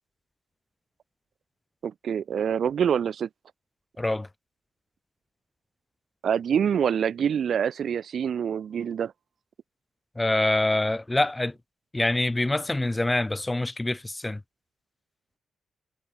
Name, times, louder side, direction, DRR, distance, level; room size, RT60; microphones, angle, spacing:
voice 1, 1.8-3.3 6.2-9.1, right 8 dB, 60° right, 0.5 m, -26 dB
voice 2, 4.0-4.3 10.2-11.6 11.9-14.4, left 2 dB, 10° left, 0.4 m, -25 dB
wide cardioid pair, 140°, 0 cm